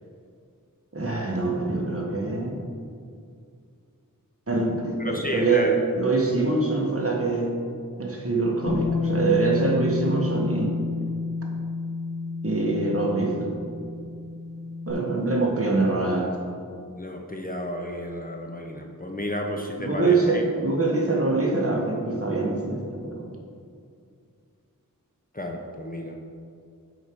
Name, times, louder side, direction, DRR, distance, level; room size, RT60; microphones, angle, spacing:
voice 1, 0.9-2.6 4.5-7.5 8.0-10.8 12.4-13.5 14.9-16.3 19.8-23.3, right 3 dB, 40° right, -1 dB, 1.4 m, -24 dB
voice 2, 5.0-5.7 17.0-20.4 25.3-26.1, left 1 dB, 25° left, 1 dB, 0.8 m, -32 dB
Bass guitar, 8.7-14.9, left 4 dB, 80° left, 1.2 m, -30 dB
6.3 x 5.0 x 6.1 m, 2.3 s
wide cardioid pair, 55°, 34 cm